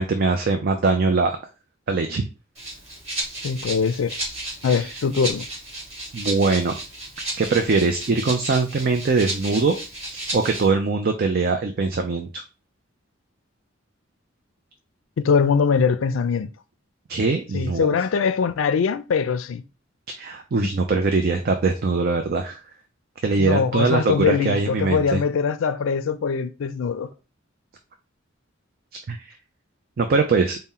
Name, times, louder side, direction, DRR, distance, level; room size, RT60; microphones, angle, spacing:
voice 1, 0.0-1.4 1.9-2.3 4.7-4.9 6.1-6.8 7.4-9.8 10.1-12.4 17.1-17.9 20.2-22.6 23.2-25.2 29.1-29.2 30.0-30.6, right 4 dB, 50° right, 0.5 m, -22 dB
Rattle (instrument), 2.5-10.7, right 1 dB, 35° right, 1.8 m, -33 dB
voice 2, 3.4-4.2 4.6-5.5 15.2-16.5 17.5-19.6 23.4-27.1, left 6 dB, 75° left, 0.4 m, -22 dB
4.2 x 2.1 x 3.7 m
head